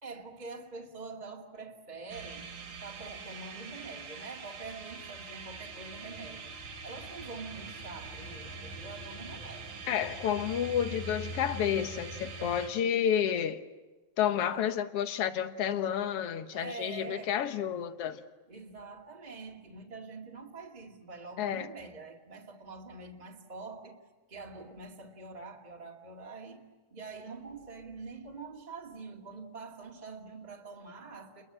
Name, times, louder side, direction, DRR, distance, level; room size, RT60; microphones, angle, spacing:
voice 1, 0.0-2.5 2.8-6.5 6.8-9.8 14.5-14.7 16.5-17.4 18.5-24.0 24.3-31.4, right 4 dB, 15° right, 2.0 m, -45 dB
sound 1, 2.1-12.7, right 3 dB, 80° right, 4.7 m, -43 dB
voice 2, 9.9-13.6 14.2-18.2 21.4-21.7, left 9 dB, 60° left, 1.7 m, -30 dB
30.0 x 22.5 x 8.8 m
omnidirectional pair, 3.7 m